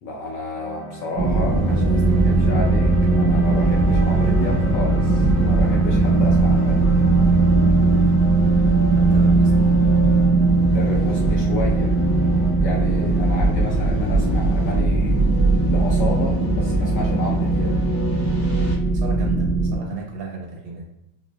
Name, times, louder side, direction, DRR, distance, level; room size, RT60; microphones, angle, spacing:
voice 1, 0.0-6.9 10.7-11.9 12.6-15.3 15.7-17.8, left 1 dB, 70° left, -1 dB, 1.1 m, -31 dB
sound 1, 0.5-16.8, equal, 90° left, 1.9 m, -38 dB
sound 2, 1.2-18.8, left 2 dB, 40° left, 0.7 m, -32 dB
sound 3, 1.2-19.7, right 3 dB, 45° right, 0.7 m, -18 dB
voice 2, 1.7-3.3 8.9-9.7 18.9-20.8, right 3 dB, 70° right, -1 dB, 1.4 m, -36 dB
5.0 x 2.4 x 2.2 m, 0.89 s
omnidirectional pair, 2.3 m